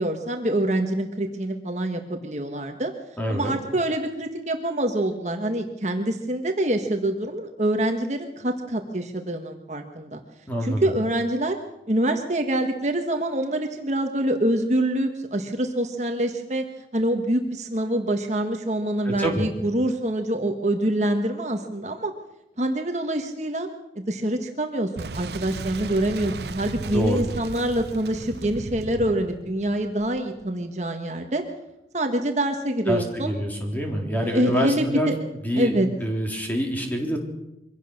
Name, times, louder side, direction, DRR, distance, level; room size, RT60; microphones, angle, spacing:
voice 1, 0.0-2.9 3.3-10.2 10.6-11.6 11.9-16.6 16.9-22.1 22.6-23.7 23.9-31.4 31.9-33.3 34.2-35.1 35.5-35.9, right 1 dB, 40° right, 4 dB, 1.5 m, -25 dB
voice 2, 3.2-3.5 10.5-10.9 19.0-19.5 26.9-27.3 32.9-35.1 35.4-37.2, equal, 10° left, 1 dB, 3.7 m, -26 dB
Boom, 25.0-30.5, right 3 dB, 70° right, 0.7 m, -36 dB
24.0 x 16.5 x 6.6 m, 0.90 s
head